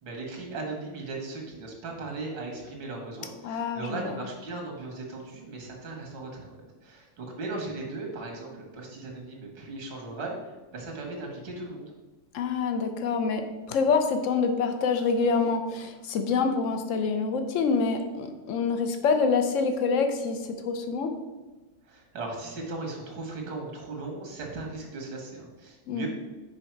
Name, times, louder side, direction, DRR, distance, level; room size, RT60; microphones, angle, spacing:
voice 1, 0.0-6.5 6.8-10.3 10.7-11.9 21.8-26.1, right 3 dB, 80° right, 1 dB, 2.1 m, -37 dB
voice 2, 3.4-4.2 12.3-21.2 25.9-26.1, left 5 dB, 70° left, 6 dB, 0.7 m, -26 dB
6.3 x 4.8 x 4.5 m, 1.2 s
omnidirectional pair, 2.1 m